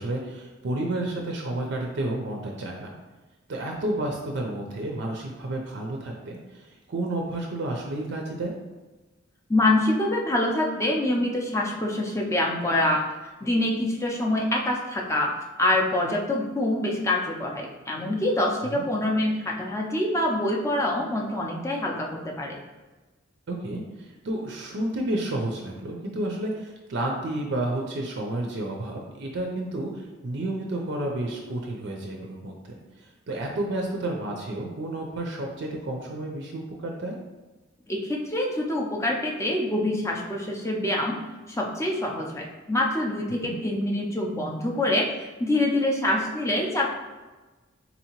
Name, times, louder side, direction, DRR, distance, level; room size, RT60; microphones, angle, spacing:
voice 1, 0.0-2.9 3.5-8.5 18.7-18.8 23.5-32.8 33.3-37.2 43.4-43.6, right 1 dB, 60° right, 0 dB, 0.5 m, -31 dB
voice 2, 9.5-13.0 13.4-15.3 15.6-22.6 37.9-41.2 41.5-45.1 45.4-47.0, left 1 dB, 15° left, -1 dB, 0.4 m, -25 dB
4.1 x 2.7 x 2.9 m, 1.2 s
head